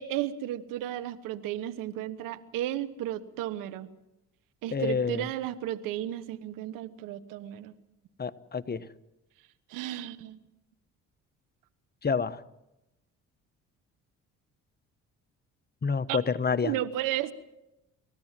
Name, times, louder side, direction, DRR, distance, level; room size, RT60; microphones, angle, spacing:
voice 1, 0.0-3.9 4.6-7.7 9.7-10.4 16.1-16.2 16.6-17.3, right 13 dB, 85° right, 14 dB, 1.3 m, -33 dB
voice 2, 4.7-5.2 8.2-8.8 12.0-12.4 15.8-16.7, left 5 dB, 30° left, 12 dB, 1.1 m, -28 dB
29.0 x 15.0 x 7.5 m, 0.92 s
supercardioid pair, 75°, 32 cm